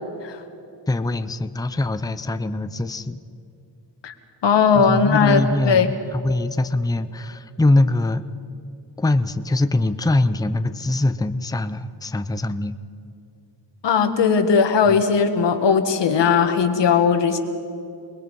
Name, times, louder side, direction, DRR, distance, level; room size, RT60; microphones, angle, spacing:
voice 1, 0.9-3.2 4.7-8.2 9.0-12.8 14.9-15.0, left 2 dB, 10° left, 10 dB, 0.6 m, -23 dB
voice 2, 4.4-5.4 5.7-5.9 13.8-17.4, left 6 dB, 80° left, 7 dB, 1.9 m, -18 dB
29.0 x 21.0 x 5.5 m, 2.6 s
wide cardioid pair, 130°, 42 cm